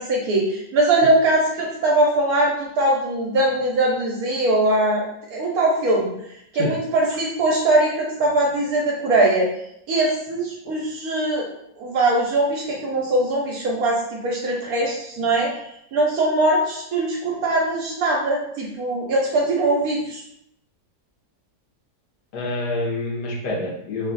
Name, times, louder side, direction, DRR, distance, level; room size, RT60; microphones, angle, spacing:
voice 1, 0.0-5.0 5.3-6.1 6.5-9.5 9.9-11.4 11.8-20.2, right 2 dB, 70° right, -2 dB, 1.1 m, -21 dB
voice 2, 22.3-24.1, left 2 dB, 75° left, -3 dB, 1.5 m, -27 dB
3.2 x 2.3 x 3.8 m, 0.77 s
omnidirectional pair, 1.8 m